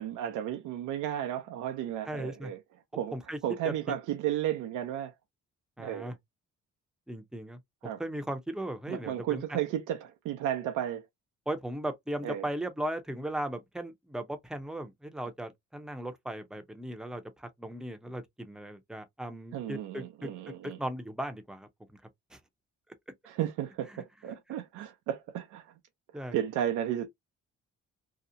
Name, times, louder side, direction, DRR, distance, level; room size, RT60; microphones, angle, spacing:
voice 1, 0.0-2.6 2.9-3.1 3.4-5.1 5.8-6.1 7.8-8.0 8.9-11.1 12.2-12.5 19.5-20.8 23.3-25.7 26.3-27.1, right 11 dB, 90° right, 0.5 m, -33 dB
voice 2, 2.1-2.5 3.1-3.4 3.6-3.7 5.8-6.2 7.1-9.6 11.5-21.7 22.3-22.4 23.9-24.0 26.1-26.3, right 1 dB, ahead, 0.6 m, -37 dB
2.8 x 2.0 x 2.5 m
cardioid pair, 90°, 30 cm